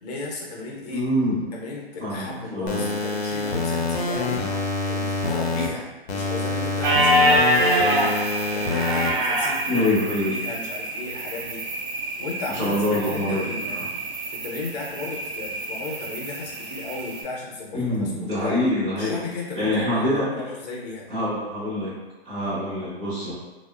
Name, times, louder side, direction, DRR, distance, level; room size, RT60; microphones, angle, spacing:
voice 1, 0.0-1.1 1.5-8.2 8.5-9.8 10.3-11.7 12.2-13.8 14.4-18.1 18.4-18.6 19.0-21.0, left 3 dB, 40° left, -2 dB, 0.7 m, -35 dB
voice 2, 0.9-1.4 2.0-2.8 9.7-10.3 12.5-13.4 13.7-13.9 17.7-19.2 19.5-20.2 21.1-21.9 22.2-23.3, left 1 dB, 15° right, -12 dB, 0.6 m, -25 dB
sound 1, 2.7-5.7 6.1-9.1, left 3 dB, 80° left, 0.6 m, -26 dB
sound 2, 6.8-17.2, right 1 dB, 60° right, 0.6 m, -26 dB
2.7 x 2.0 x 2.4 m, 1.2 s
hypercardioid pair, 145°, 31 cm